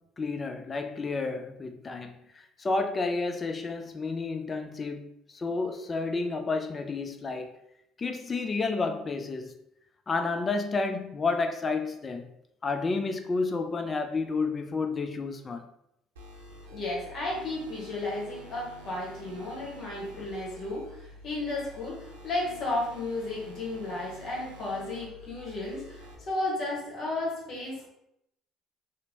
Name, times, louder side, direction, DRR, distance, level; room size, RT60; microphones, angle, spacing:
voice 1, 0.2-7.6 8.0-9.6 10.1-12.3 12.6-15.7 20.1-20.3, left 3 dB, 35° left, 0.3 m, -31 dB
sound 1, 16.2-26.2, equal, 85° right, 0.4 m, -48 dB
voice 2, 16.7-27.9, left 2 dB, 55° left, 1.0 m, -33 dB
2.8 x 2.0 x 2.8 m
hypercardioid pair, 60°, 0 cm